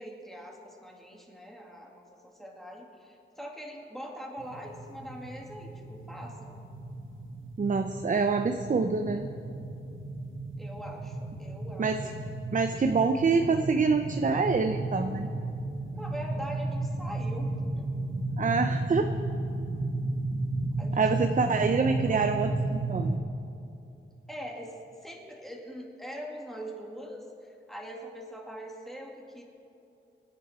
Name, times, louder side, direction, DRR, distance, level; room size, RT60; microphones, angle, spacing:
voice 1, 0.0-6.6 10.6-12.0 15.9-17.9 20.8-21.0 22.1-22.3 24.3-24.7 25.0-29.4, equal, ahead, -1 dB, 2.2 m, -42 dB
sound 1, 4.4-23.2, right 2 dB, 75° right, 1.3 m, -34 dB
voice 2, 7.6-9.3 11.8-12.1 12.5-15.3 18.4-19.1 21.0-23.2, right 4 dB, 40° right, 7 dB, 0.6 m, -26 dB
25.5 x 10.5 x 4.4 m, 2.7 s
wide cardioid pair, 115°, 20 cm